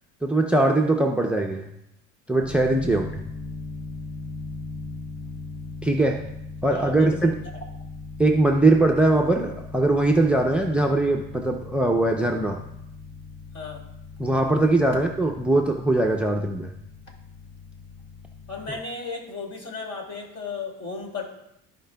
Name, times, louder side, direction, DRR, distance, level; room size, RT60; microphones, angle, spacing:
voice 1, 0.2-1.7 2.3-3.2 5.8-6.2 6.6-7.4 8.2-12.6 14.2-16.7 18.7-18.8, right 2 dB, 5° right, 3 dB, 0.6 m, -21 dB
sound 1, 2.4-18.8, left 3 dB, 25° left, 0.8 m, -39 dB
voice 2, 6.7-7.3 13.5-13.8 18.5-21.2, left 4 dB, 45° left, 0 dB, 2.5 m, -35 dB
14.5 x 5.1 x 2.3 m, 0.82 s
supercardioid pair, 100°, 35 cm